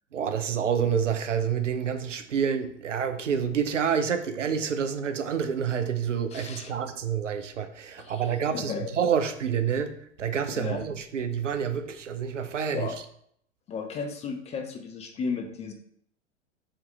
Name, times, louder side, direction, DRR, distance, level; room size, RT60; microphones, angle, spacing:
voice 1, 0.1-12.9, right 7 dB, 90° right, 0.5 m, -28 dB
voice 2, 6.3-6.7 8.0-8.3 8.5-8.9 10.6-10.8 12.7-13.0 13.7-15.7, left 5 dB, 20° left, 0.4 m, -34 dB
3.6 x 2.9 x 3.5 m
figure-of-eight pair, 90°, 36 cm